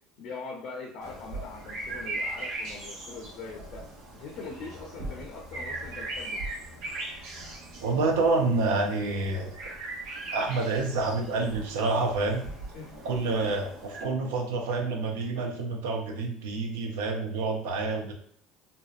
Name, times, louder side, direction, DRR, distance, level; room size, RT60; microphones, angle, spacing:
voice 1, 0.2-3.9 4.1-6.4 12.7-12.9 15.2-15.3, left 4 dB, 65° left, -1 dB, 0.5 m, -42 dB
sound 1, 1.0-14.0, right 2 dB, 75° right, 0.8 m, -39 dB
voice 2, 7.8-9.6 10.3-12.4 13.0-18.1, right 3 dB, 90° right, 3 dB, 0.5 m, -28 dB
2.6 x 2.0 x 2.3 m, 0.64 s
supercardioid pair, 100°, 0 cm